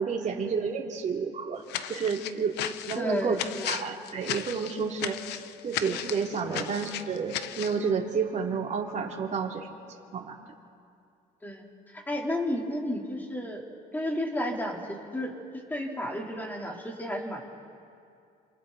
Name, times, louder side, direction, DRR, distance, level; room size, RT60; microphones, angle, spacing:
voice 1, 0.0-2.6 2.9-3.3 3.6-5.2 5.6-9.7 10.1-10.3, right 5 dB, 45° right, 0 dB, 2.9 m, -30 dB
sound 1, 1.7-7.8, left 11 dB, 85° left, 0.8 m, -35 dB
voice 2, 3.0-3.7 6.5-6.6 11.4-11.6 12.1-13.6 13.9-15.3 15.7-17.4, left 1 dB, 10° left, -1 dB, 3.6 m, -32 dB
27.5 x 27.0 x 4.1 m, 2.4 s
cardioid pair, 110°, 17 cm